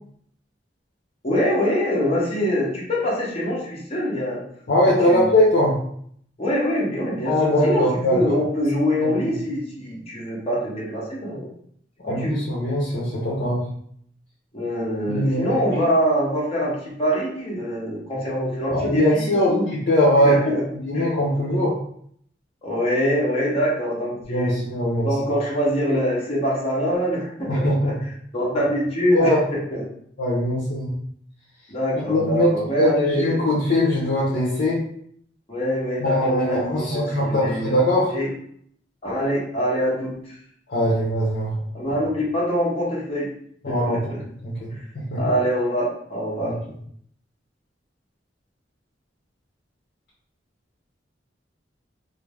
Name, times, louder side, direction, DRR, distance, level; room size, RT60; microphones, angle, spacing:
voice 1, 1.2-4.4 4.8-5.4 6.4-11.5 12.1-12.4 14.5-19.6 20.2-20.6 20.9-21.1 22.6-24.6 25.0-28.1 28.3-29.8 31.7-33.5 35.5-37.7 38.1-38.3 39.0-40.4 41.7-43.3 43.6-44.2 44.7-44.8 45.2-46.6, equal, 35° left, -5 dB, 1.2 m, -24 dB
voice 2, 4.7-5.7 7.2-8.2 9.0-9.4 12.0-13.6 15.1-15.5 18.7-20.3 20.8-21.7 24.3-25.1 27.5-27.9 29.1-29.4 30.2-31.0 32.1-34.8 36.0-38.2 40.7-41.5 43.6-44.1 44.4-44.5 44.9-45.2 46.4-46.5, left 1 dB, 55° left, -6 dB, 1.0 m, -21 dB
3.9 x 2.0 x 3.5 m, 0.65 s
head